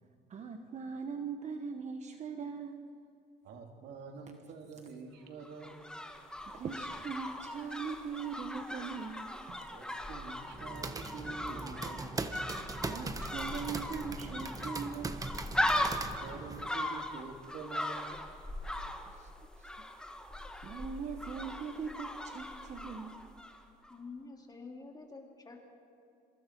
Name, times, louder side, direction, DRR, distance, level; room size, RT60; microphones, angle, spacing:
voice 1, 0.3-3.0 6.5-9.7 12.9-15.3 19.2-19.3 19.6-19.7 20.6-23.2, right 6 dB, 45° right, 6 dB, 1.2 m, -41 dB
voice 2, 3.4-6.0 9.7-12.4 15.7-18.3, right 4 dB, 75° right, 3 dB, 2.7 m, -47 dB
sound 1, 5.4-23.6 23.8-23.9, left 1 dB, 5° left, 1.8 m, -39 dB
sound 2, 10.5-16.7, right 3 dB, 20° right, 1.2 m, -41 dB
voice 3, 23.9-25.7, left 4 dB, 25° left, 1 dB, 3.2 m, -48 dB
26.5 x 23.5 x 4.6 m, 2.7 s
cardioid pair, 110°, 17 cm